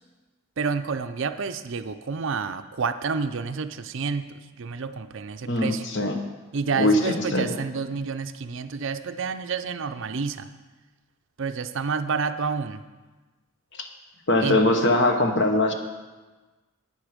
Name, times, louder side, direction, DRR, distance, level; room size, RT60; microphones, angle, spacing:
voice 1, 0.6-5.9 6.5-10.5 11.4-12.8 14.4-14.6, right 5 dB, 55° right, 10 dB, 0.5 m, -29 dB
voice 2, 5.5-6.2 6.8-7.5 13.7-13.9 14.3-15.7, left 1 dB, 55° left, 5 dB, 1.1 m, -22 dB
10.5 x 9.1 x 5.1 m, 1.3 s
head